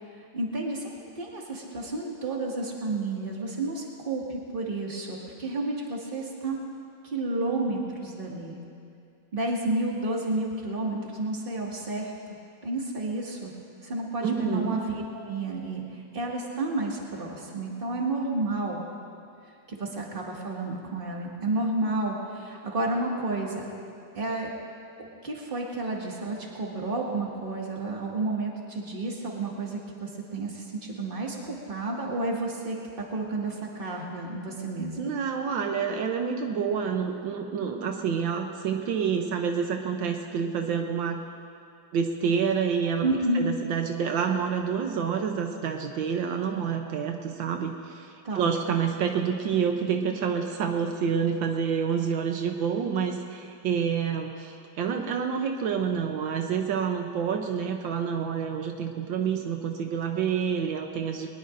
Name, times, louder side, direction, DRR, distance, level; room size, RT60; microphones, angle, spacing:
voice 1, 0.3-0.9 1.2-6.6 7.0-8.6 9.3-12.1 12.6-13.5 13.8-14.9 15.2-15.8 16.1-18.8 19.7-23.6 24.1-24.5 25.2-32.8 33.1-35.0 43.0-43.5 48.2-48.5, right 2 dB, 30° right, -2 dB, 2.1 m, -31 dB
voice 2, 14.2-14.8 35.0-41.2 41.9-43.1 43.3-61.3, right 7 dB, 80° right, 3 dB, 1.6 m, -28 dB
21.5 x 20.0 x 2.6 m, 2.5 s
omnidirectional pair, 2.1 m